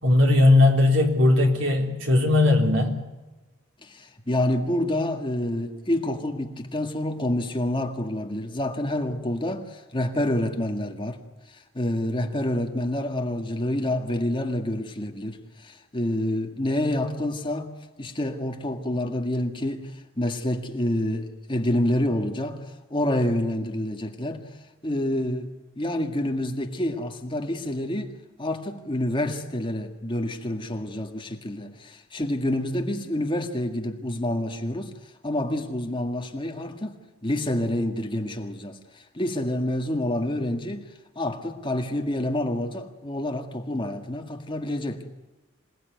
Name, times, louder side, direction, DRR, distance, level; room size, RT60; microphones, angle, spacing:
voice 1, 0.0-3.0, left 2 dB, 65° right, 3.7 m, -18 dB
voice 2, 3.8-11.2 11.5-17.7 18.0-22.7 22.9-24.5 24.8-25.5 25.8-28.1 28.4-34.9 35.2-37.0 37.2-40.8 41.2-45.0, left 1 dB, 25° left, 1.9 m, -28 dB
26.5 x 18.5 x 9.4 m
head